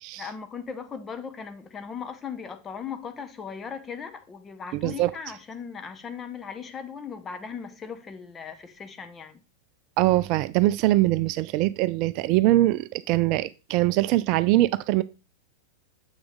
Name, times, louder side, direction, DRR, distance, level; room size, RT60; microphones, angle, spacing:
voice 1, 0.2-9.4, left 6 dB, 20° left, 0.9 m, -38 dB
voice 2, 10.0-15.0, right 16 dB, 40° right, 0.3 m, -22 dB
7.0 x 6.1 x 3.6 m
figure-of-eight pair, 90°, 0 cm